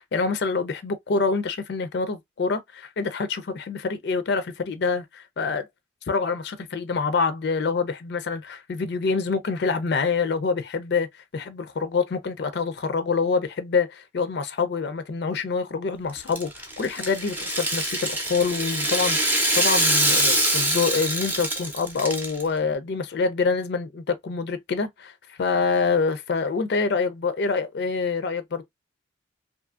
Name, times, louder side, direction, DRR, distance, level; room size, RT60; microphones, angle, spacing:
voice 1, 0.0-5.7 6.1-28.6, left 4 dB, 55° left, 0.4 m, -26 dB
Rattle (instrument), 16.2-22.4, right 1 dB, 10° right, 0.5 m, -24 dB
2.6 x 2.4 x 2.3 m
head